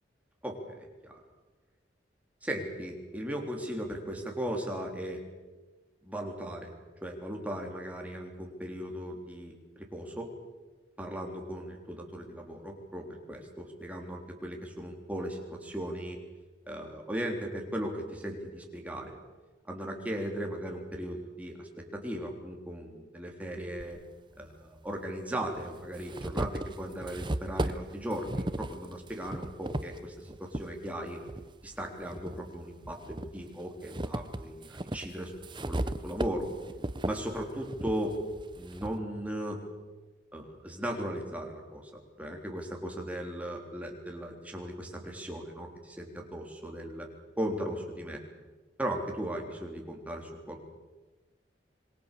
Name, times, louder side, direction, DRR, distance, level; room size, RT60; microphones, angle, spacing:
voice 1, 0.4-1.2 2.4-5.2 6.0-6.7 7.0-10.3 11.0-16.2 16.7-19.2 19.7-24.0 24.4-31.2 31.6-35.3 35.7-36.5 37.0-38.2 38.6-39.6 40.3-47.1 47.4-48.2 48.8-50.7, right 1 dB, 10° right, 1 dB, 3.6 m, -37 dB
sound 1, 23.8-23.9 25.0-25.1 25.6-30.7 31.2-32.4 32.8-39.0, right 1 dB, 25° right, 0.8 m, -36 dB
27.0 x 22.5 x 6.9 m, 1.2 s
head